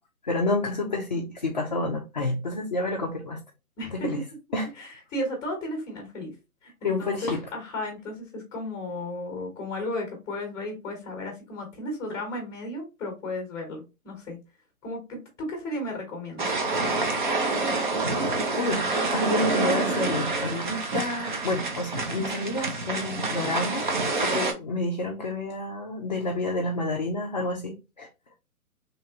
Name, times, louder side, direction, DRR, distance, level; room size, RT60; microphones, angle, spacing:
voice 1, 0.3-3.4 3.9-4.2 4.5-4.7 6.8-7.4 18.6-18.8 19.1-23.9 24.2-28.1, left 2 dB, 35° left, 0.4 m, -29 dB
voice 2, 3.8-4.2 4.7-6.3 6.6-14.4 14.8-16.5, left 1 dB, 10° left, 0.9 m, -34 dB
sound 1, 16.4-24.5, right 3 dB, 35° right, 0.5 m, -27 dB
3.1 x 2.9 x 2.7 m
figure-of-eight pair, 140°, 43 cm